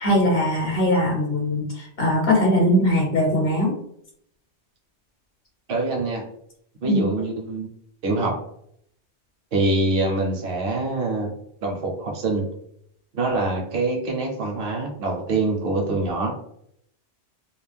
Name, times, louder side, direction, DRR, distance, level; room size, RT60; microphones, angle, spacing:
voice 1, 0.0-3.7 6.9-7.0, left 1 dB, 65° left, 0 dB, 0.8 m, -20 dB
voice 2, 5.7-6.3 6.8-7.7 8.0-8.4 9.5-11.3 11.6-12.5 13.1-16.3, right 2 dB, 60° right, 1 dB, 0.9 m, -24 dB
2.5 x 2.1 x 3.3 m, 0.70 s
omnidirectional pair, 1.1 m